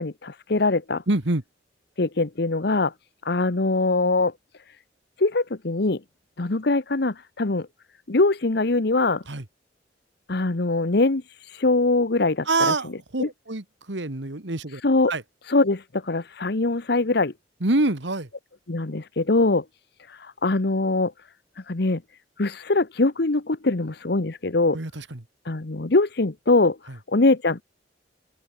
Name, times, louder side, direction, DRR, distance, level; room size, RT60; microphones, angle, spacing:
voice 1, 0.0-1.0 2.0-2.9 3.2-4.3 5.2-6.0 6.4-7.7 8.1-9.2 10.3-12.5 13.2-13.3 14.8-15.1 15.5-17.3 18.7-19.6 20.1-21.1 21.7-22.0 22.4-24.8 25.5-26.8 27.1-27.6, left 2 dB, 60° left, 1.1 m, -22 dB
voice 2, 1.1-1.4 9.3-9.5 12.5-14.8 15.1-15.2 17.6-18.3 24.7-25.2 26.9-27.0, right 2 dB, 80° right, 2.0 m, -26 dB
open air
head